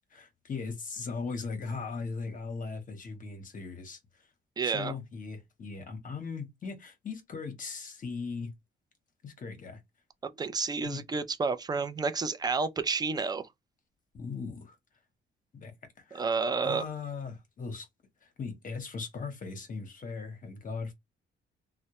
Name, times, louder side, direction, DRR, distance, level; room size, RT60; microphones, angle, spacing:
voice 1, 0.1-4.0 4.6-8.5 9.2-9.8 10.8-11.0 14.1-14.8 15.5-15.7 16.0-16.3 16.6-17.9 18.2-20.9, left 4 dB, 40° left, 0.8 m, -38 dB
voice 2, 4.6-4.9 10.2-13.5 16.1-16.8, right 4 dB, 20° right, 0.4 m, -30 dB
2.1 x 2.0 x 2.8 m
cardioid pair, 90°, 20 cm